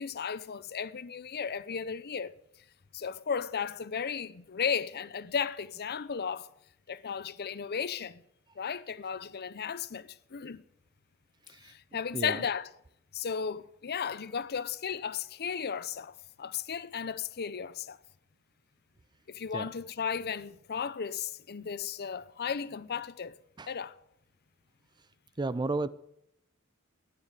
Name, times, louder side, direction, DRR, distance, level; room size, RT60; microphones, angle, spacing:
voice 1, 0.0-2.3 2.9-6.5 6.9-8.2 8.6-10.6 11.6-12.7 13.1-18.0 19.3-23.4 23.7-24.0, left 6 dB, 50° left, 0.6 m, -35 dB
voice 2, 25.4-25.9, right 3 dB, 20° right, 0.4 m, -32 dB
12.5 x 9.8 x 9.6 m
head